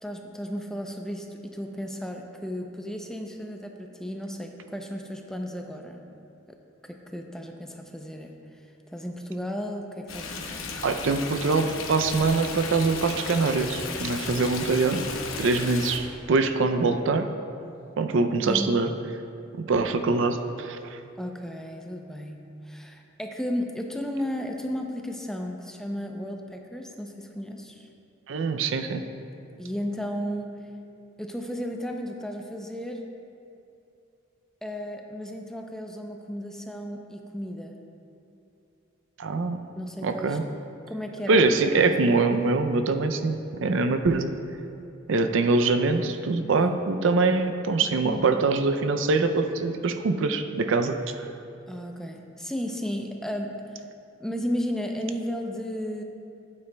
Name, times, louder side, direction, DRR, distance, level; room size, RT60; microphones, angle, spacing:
voice 1, 0.0-6.0 6.5-6.6 6.8-8.3 8.9-10.9 18.5-18.7 21.2-22.4 22.7-27.9 29.6-30.6 31.2-33.0 34.6-37.7 39.8-40.4 40.9-41.5 42.1-42.2 46.6-46.7 48.0-48.4 51.7-53.6 54.2-56.0, equal, 5° left, 2 dB, 0.5 m, -34 dB
Stream, 10.1-16.0, left 4 dB, 85° left, 0.8 m, -35 dB
voice 2, 10.8-15.1 15.4-17.3 18.0-18.9 19.5-21.0 28.3-29.0 39.2-39.6 40.0-40.4 41.3-44.3 45.1-51.3, right 3 dB, 65° right, 8 dB, 0.4 m, -24 dB
12.5 x 8.6 x 2.2 m, 2.6 s
head